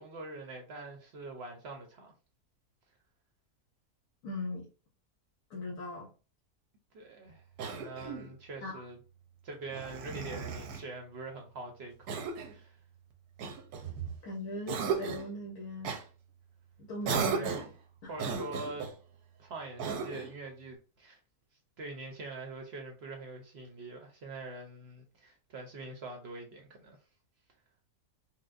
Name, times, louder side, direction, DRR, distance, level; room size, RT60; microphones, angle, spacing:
voice 1, 0.0-2.1 6.9-7.4 7.7-9.0 9.4-12.8 17.3-17.7 18.0-18.9 19.4-21.2 21.8-27.0, right 3 dB, 60° right, 0.7 m, -44 dB
voice 2, 4.2-4.7 5.5-6.1 8.6-8.8 14.2-16.0 16.8-17.6 18.0-18.1, left 2 dB, 75° left, 1.3 m, -39 dB
Cough, 7.6-8.3 9.7-10.9 12.1-12.6 13.4-14.2 14.7-15.3 15.8-16.0 17.0-17.8 18.2-19.0 19.8-20.4, right 6 dB, 85° right, 1.2 m, -35 dB
4.6 x 2.0 x 2.4 m
omnidirectional pair, 1.6 m